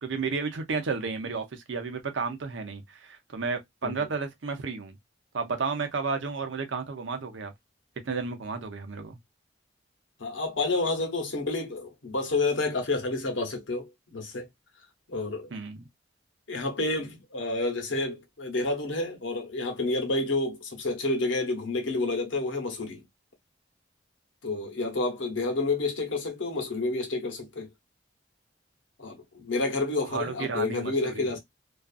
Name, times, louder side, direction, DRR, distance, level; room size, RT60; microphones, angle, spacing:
voice 1, 0.0-5.0 5.3-7.5 8.0-9.2 15.5-15.9 30.1-31.3, right 4 dB, 80° right, 0.6 m, -32 dB
voice 2, 10.2-14.5 15.1-15.5 16.5-23.0 24.4-27.7 29.0-31.4, left 2 dB, 80° left, 0.9 m, -29 dB
2.4 x 2.4 x 2.3 m
head